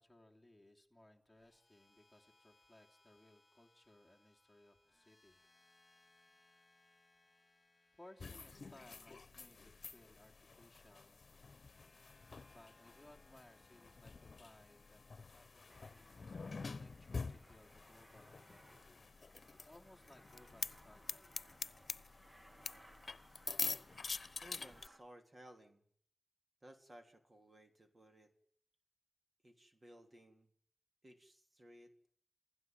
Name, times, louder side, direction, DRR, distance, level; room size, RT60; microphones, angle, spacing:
voice 1, 0.0-5.4 8.0-11.2 12.5-21.4, left 1 dB, 5° left, 0 dB, 3.1 m, -64 dB
sound 1, 1.3-19.5, left 2 dB, 25° left, 3.5 m, -72 dB
sound 2, 8.2-24.9, left 4 dB, 65° left, 1.0 m, -47 dB
Aircraft, 15.7-25.0, right 1 dB, 20° right, 1.3 m, -65 dB
voice 2, 24.4-25.8 26.6-28.3 29.4-30.5 31.0-31.9, right 1 dB, 40° right, 6 dB, 3.2 m, -59 dB
28.5 x 16.5 x 9.2 m, 0.63 s
wide cardioid pair, 100°, 0 cm